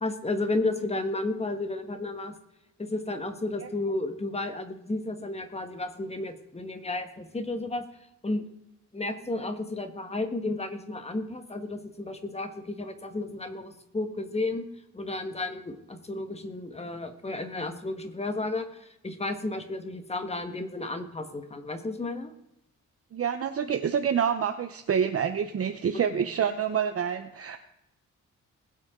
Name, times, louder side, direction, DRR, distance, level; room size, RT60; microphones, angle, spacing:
voice 1, 0.0-2.3 2.8-7.8 8.2-8.4 8.9-14.6 14.9-22.3 25.9-26.3, left 2 dB, 20° left, 7 dB, 1.5 m, -32 dB
voice 2, 23.1-27.6, right 8 dB, 50° right, 7 dB, 0.8 m, -27 dB
20.5 x 8.3 x 3.7 m, 0.85 s
cardioid pair, 115°, 30 cm